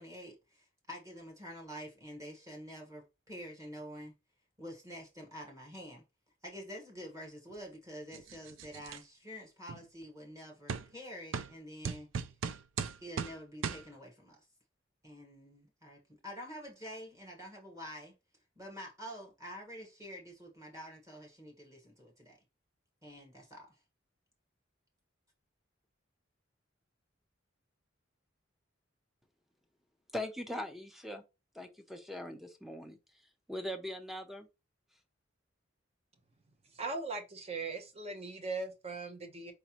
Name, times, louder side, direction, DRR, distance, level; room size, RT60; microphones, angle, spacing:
voice 1, 0.0-4.1 4.6-6.0 6.4-12.1 13.0-14.4 15.0-18.1 18.6-22.4 23.0-23.8, equal, 15° right, 1.3 m, -47 dB
sound 1, 8.1-9.0 9.7-9.8 10.7-10.9 11.3-11.5 11.8-13.4 13.6-13.8, right 6 dB, 75° right, 0.4 m, -37 dB
voice 2, 30.1-31.2 31.5-33.0 33.5-34.5, left 1 dB, ahead, 0.6 m, -40 dB
voice 3, 36.7-39.5, right 3 dB, 35° right, 0.8 m, -39 dB
4.9 x 3.1 x 2.9 m
head